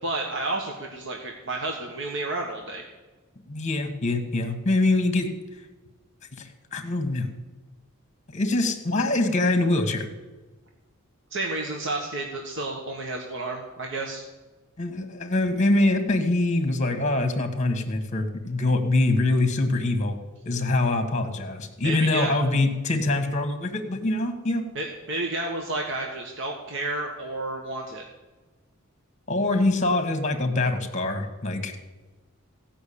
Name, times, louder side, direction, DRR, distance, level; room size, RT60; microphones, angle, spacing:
voice 1, 0.0-2.8 11.3-14.2 21.8-22.4 24.7-28.0, right 2 dB, 60° right, 1 dB, 1.5 m, -31 dB
voice 2, 3.5-5.3 6.4-7.3 8.3-10.0 14.8-20.2 20.4-24.7 29.3-31.8, left 2 dB, 35° left, 7 dB, 1.5 m, -24 dB
16.5 x 5.8 x 8.6 m, 1.2 s
head